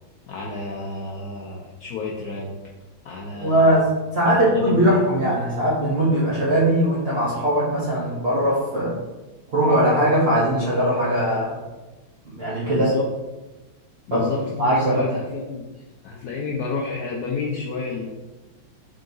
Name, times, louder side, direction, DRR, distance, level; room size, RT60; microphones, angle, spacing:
voice 1, 0.3-2.5 3.0-3.8 4.2-5.0 12.6-13.1 14.1-18.0, left 4 dB, 80° left, -3 dB, 0.8 m, -30 dB
voice 2, 3.3-9.0 9.5-11.6 12.3-12.9 14.1-14.3 14.6-15.1, right 1 dB, 70° right, -7 dB, 0.5 m, -20 dB
3.8 x 3.7 x 2.6 m, 1.1 s
omnidirectional pair, 2.2 m